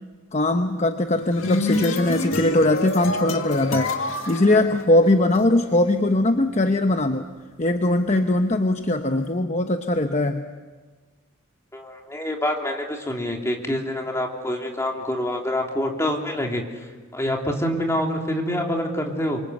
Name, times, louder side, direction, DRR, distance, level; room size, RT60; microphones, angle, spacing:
voice 1, 0.3-7.3 7.6-10.5, left 1 dB, 35° left, 6 dB, 1.0 m, -21 dB
sound 1, 1.1-5.4, left 2 dB, 70° left, 2.0 m, -27 dB
voice 2, 11.7-19.4, left 1 dB, 15° left, 1 dB, 3.2 m, -26 dB
27.5 x 24.5 x 8.0 m, 1.4 s
head